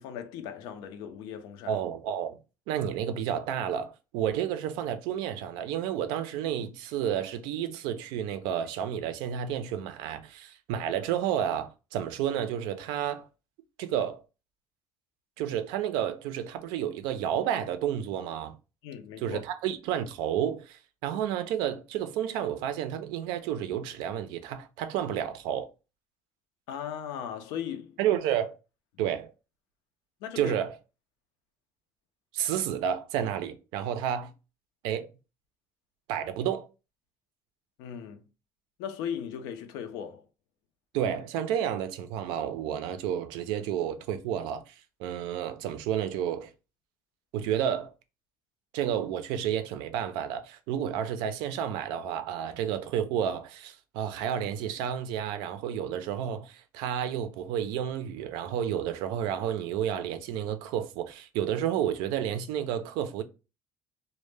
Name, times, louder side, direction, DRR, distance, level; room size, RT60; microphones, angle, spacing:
voice 1, 0.0-1.8 18.8-19.4 26.7-28.0 30.2-30.5 37.8-38.2 38.8-40.3, left 8 dB, 85° left, 0.4 m, -37 dB
voice 2, 1.7-2.4 2.7-13.3 13.8-14.2 15.4-18.5 19.2-25.7 28.0-28.5 29.0-29.3 30.4-30.7 32.3-34.3 34.8-35.1 36.1-36.7 40.9-44.7 45.0-46.5 47.3-47.9 48.7-63.2, right 9 dB, 85° right, 0.4 m, -31 dB
2.1 x 2.0 x 3.1 m
cardioid pair, 125°, 7 cm